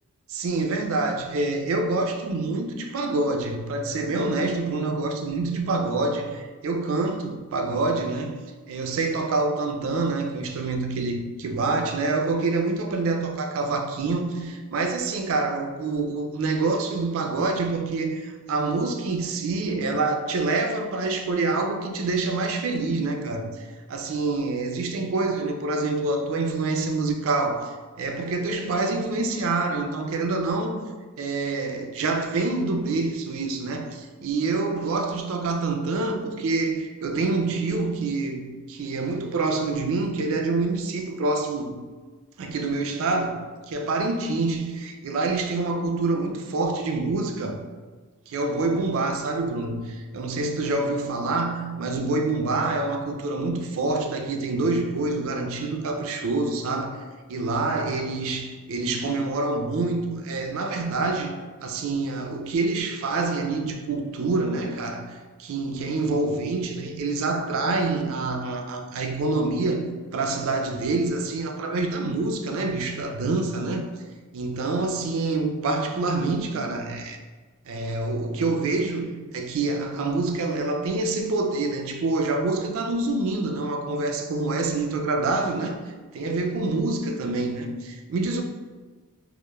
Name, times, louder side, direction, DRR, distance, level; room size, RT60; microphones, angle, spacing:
voice 1, 0.3-8.4 8.7-30.8 31.2-41.8 42.4-47.6 48.3-73.9 74.3-77.2 77.7-88.4, right 3 dB, 65° right, 0.3 m, -26 dB
2.2 x 2.0 x 3.0 m
head